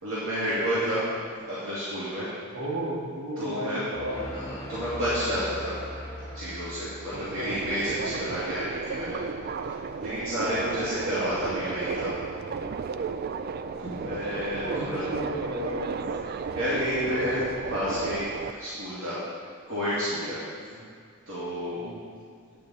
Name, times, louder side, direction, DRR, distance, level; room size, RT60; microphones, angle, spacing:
voice 1, 0.0-1.0 1.5-2.3 3.4-3.8 4.3-5.8 6.3-9.2 10.0-12.1 13.8-15.1 16.5-18.2 18.5-19.2 19.7-20.4 21.3-21.8, equal, 70° right, -11 dB, 2.3 m, -30 dB
voice 2, 2.5-4.4 7.4-7.5 7.7-8.3 10.7-11.0 13.8-14.1 14.6-16.0 20.8-20.9 21.8-22.0, right 1 dB, 90° right, -5 dB, 2.1 m, -34 dB
sound 1, 3.9-7.7, equal, 30° left, 2.3 m, -39 dB
Subway metro underground, 7.1-18.5, right 5 dB, 45° right, 0.3 m, -34 dB
10.5 x 7.3 x 4.1 m, 2.1 s
head